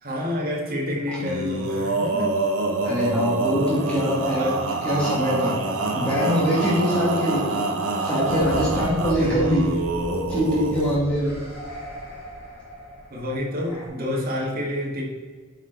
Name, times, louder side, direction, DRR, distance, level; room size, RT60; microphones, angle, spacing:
voice 1, 0.0-2.3 4.4-4.7 9.1-9.6 13.1-15.0, left 1 dB, 45° right, -3 dB, 1.9 m, -28 dB
Male singing, 1.2-11.0, right 2 dB, 85° right, 1.1 m, -26 dB
voice 2, 2.8-4.4 4.8-5.6 5.9-7.5 8.0-9.7 10.3-11.4, equal, 5° left, -9 dB, 2.2 m, -23 dB
sound 1, 8.3-13.9, equal, 50° left, 2.0 m, -37 dB
9.0 x 4.9 x 4.0 m, 1.4 s
head